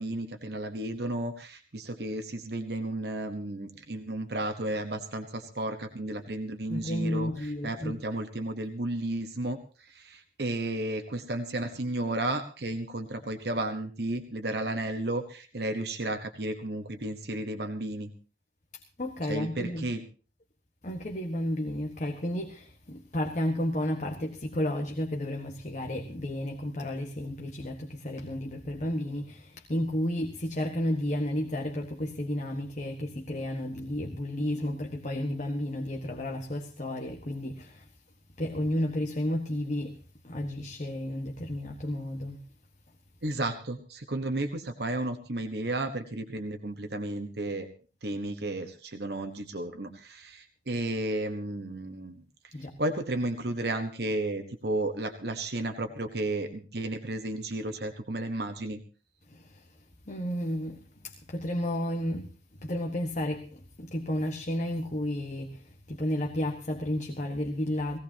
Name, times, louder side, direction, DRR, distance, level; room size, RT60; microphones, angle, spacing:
voice 1, 0.0-9.6 9.9-18.1 19.3-20.0 43.2-47.7 48.0-52.2 52.8-58.8, right 2 dB, 65° right, 1.2 m, -33 dB
voice 2, 6.7-8.0 18.7-19.8 20.8-37.9 38.4-40.0 40.2-42.4 52.5-52.7 59.3-59.8 60.1-62.3 62.6-68.0, left 1 dB, 40° left, 1.4 m, -32 dB
19.5 x 17.0 x 2.9 m
head